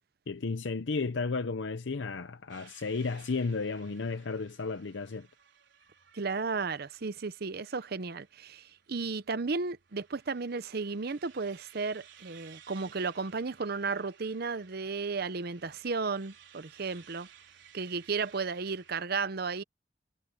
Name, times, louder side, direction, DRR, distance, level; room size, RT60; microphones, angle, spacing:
voice 1, 0.3-5.3, left 4 dB, 85° left, 0.7 m, -33 dB
sound 1, 2.5-19.0, right 9 dB, 85° right, 4.7 m, -58 dB
voice 2, 6.1-17.3 17.7-19.6, right 4 dB, 55° right, 0.8 m, -34 dB
head